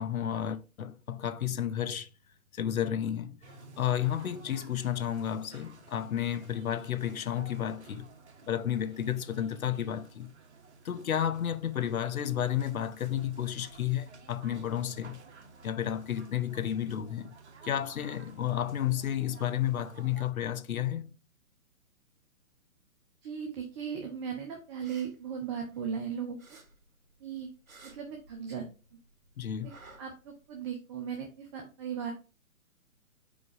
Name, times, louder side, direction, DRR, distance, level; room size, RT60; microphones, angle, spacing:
voice 1, 0.0-2.1 2.5-3.4 3.8-8.1 8.5-10.3 10.8-15.2 15.6-17.3 17.6-21.2 29.4-29.7, left 10 dB, 75° left, 0.9 m, -32 dB
sound 1, 3.4-20.3, right 3 dB, 50° right, 1.5 m, -53 dB
voice 2, 23.2-26.4 27.2-27.5 27.8-28.6 29.6-29.7 30.0-32.1, right 7 dB, 20° right, 0.8 m, -37 dB
sound 2, 24.6-26.0 26.4-28.8 29.0-30.6, right 3 dB, 70° right, 2.4 m, -55 dB
5.3 x 4.7 x 4.7 m
hypercardioid pair, 140°, 42 cm